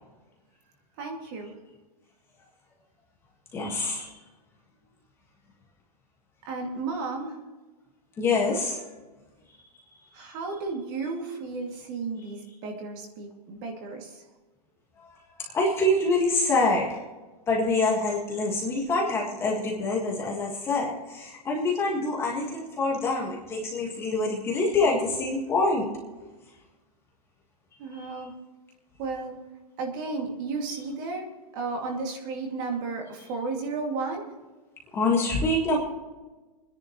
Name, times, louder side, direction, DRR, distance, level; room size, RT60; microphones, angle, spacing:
voice 1, 1.0-1.5 6.4-7.4 10.1-14.2 27.8-28.3 29.0-29.4 29.8-34.3, right 3 dB, 30° right, 1 dB, 2.4 m, -33 dB
voice 2, 3.5-4.1 8.2-8.8 15.4-17.0 17.5-25.9 27.9-28.2 34.9-35.8, left 2 dB, 15° left, -2 dB, 1.7 m, -26 dB
28.0 x 10.5 x 3.1 m, 1.2 s
supercardioid pair, 175°, 20 cm